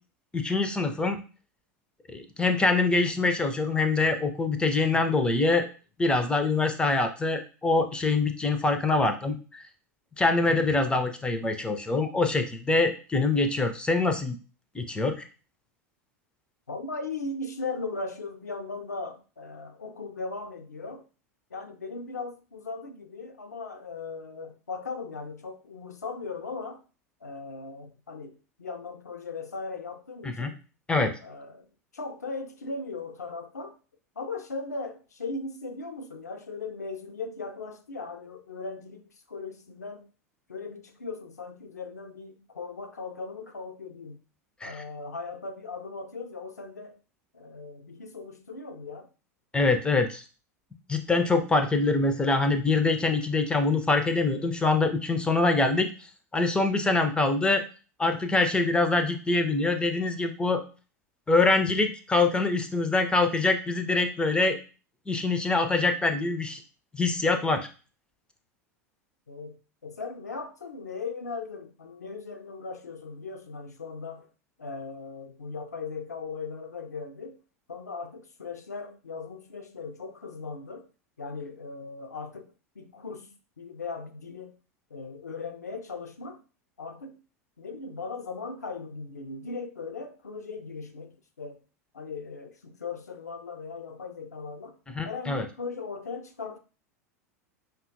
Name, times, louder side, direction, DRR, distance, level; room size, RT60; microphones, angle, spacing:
voice 1, 0.3-1.2 2.1-5.7 6.0-9.6 10.2-14.4 14.7-15.2 30.4-30.5 30.9-31.2 44.6-44.8 49.5-50.2 50.9-55.9 56.3-57.6 58.0-60.6 61.3-64.6 65.1-66.6 67.0-67.7 95.0-95.4, left 3 dB, 10° left, 0.4 m, -24 dB
voice 2, 16.7-21.0 21.5-26.8 27.2-30.6 31.2-31.7 31.9-33.8 34.2-39.0 39.3-40.1 40.5-44.2 44.6-47.0 47.3-49.1 69.3-74.3 74.6-77.4 77.7-80.9 81.2-84.5 84.9-86.4 86.8-87.2 87.6-91.6 91.9-94.8 95.0-96.6, left 4 dB, 80° left, 0.4 m, -38 dB
5.4 x 2.2 x 2.6 m
figure-of-eight pair, 85°, 9 cm